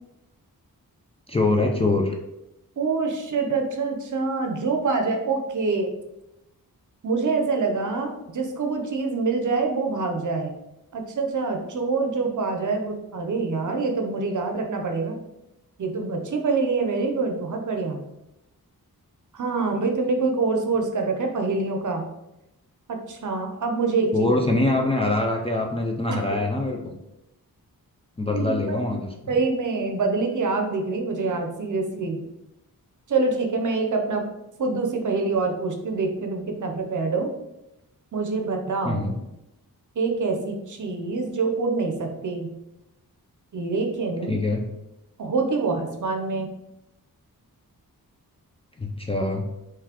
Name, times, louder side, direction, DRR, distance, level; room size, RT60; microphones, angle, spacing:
voice 1, 1.3-2.1 24.1-27.0 28.2-29.4 38.8-39.2 44.3-44.6 48.8-49.5, left 2 dB, 15° left, 0 dB, 0.3 m, -24 dB
voice 2, 2.8-5.9 7.0-10.5 10.9-15.2 15.8-18.0 19.3-22.0 22.9-24.3 26.1-26.2 28.3-28.8 29.3-32.2 33.1-34.2 34.6-37.3 38.1-39.1 40.0-42.5 43.5-44.4 45.2-46.5, right 4 dB, 55° right, 3 dB, 0.6 m, -25 dB
4.0 x 3.1 x 2.9 m, 0.91 s
wide cardioid pair, 155°, 36 cm